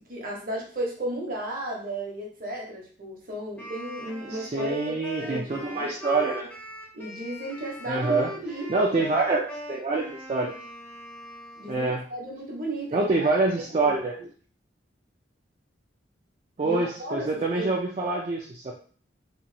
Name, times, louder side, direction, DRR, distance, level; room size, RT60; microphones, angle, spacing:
voice 1, 0.1-5.9 6.9-9.1 11.6-14.0 16.6-17.8, right 1 dB, 50° right, -1 dB, 0.8 m, -34 dB
Wind instrument woodwind instrument, 3.6-12.0, equal, 10° left, 0.6 m, -40 dB
voice 2, 4.3-6.5 7.9-8.3 8.7-10.5 11.7-12.0 12.9-14.2 16.6-18.7, right 3 dB, 35° right, -2 dB, 0.4 m, -26 dB
2.9 x 2.4 x 2.6 m, 0.43 s
head